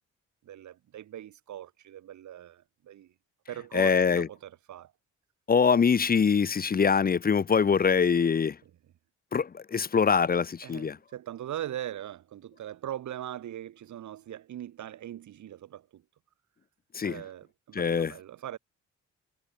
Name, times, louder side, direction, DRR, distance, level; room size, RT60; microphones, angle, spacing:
voice 1, 0.4-3.1 3.5-4.9 8.6-8.7 10.6-16.0 17.1-18.6, right 11 dB, 70° right, 4.4 m, -40 dB
voice 2, 3.7-4.3 5.5-8.6 9.3-11.0 16.9-17.2 17.7-18.1, left 6 dB, 30° left, 0.8 m, -24 dB
cardioid pair, 90°, 30 cm